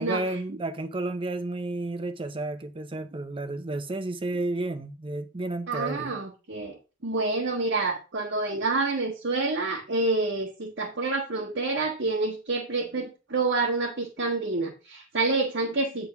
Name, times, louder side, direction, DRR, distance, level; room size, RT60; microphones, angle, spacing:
voice 1, 0.0-6.1, right 2 dB, 25° right, 0.6 m, -32 dB
voice 2, 5.7-6.8 7.0-16.1, right 3 dB, 60° right, 1.5 m, -28 dB
9.2 x 3.8 x 5.8 m
head